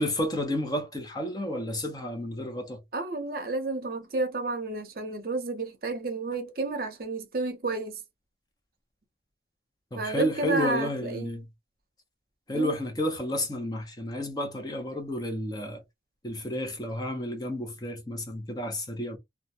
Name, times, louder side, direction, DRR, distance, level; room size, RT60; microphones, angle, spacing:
voice 1, 0.0-2.8 9.9-11.4 12.5-15.8 16.2-19.2, left 1 dB, 20° left, 0.6 m, -31 dB
voice 2, 2.9-8.0 9.9-11.4 12.5-12.7, right 3 dB, 55° right, 0.6 m, -31 dB
2.2 x 2.1 x 2.7 m
head